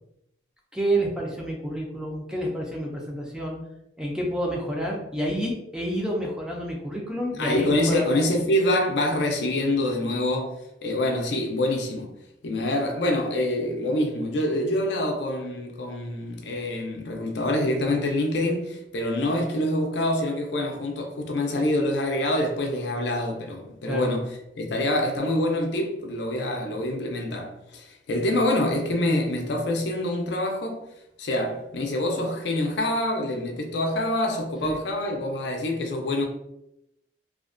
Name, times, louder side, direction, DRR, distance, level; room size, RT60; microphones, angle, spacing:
voice 1, 0.7-3.6 4.0-8.1 23.8-24.1 34.6-34.8, right 1 dB, 5° right, 0.3 m, -29 dB
voice 2, 7.4-10.5 10.8-12.1 12.4-30.8 31.2-36.3, left 1 dB, 70° left, 0.4 m, -26 dB
2.4 x 2.1 x 2.4 m
head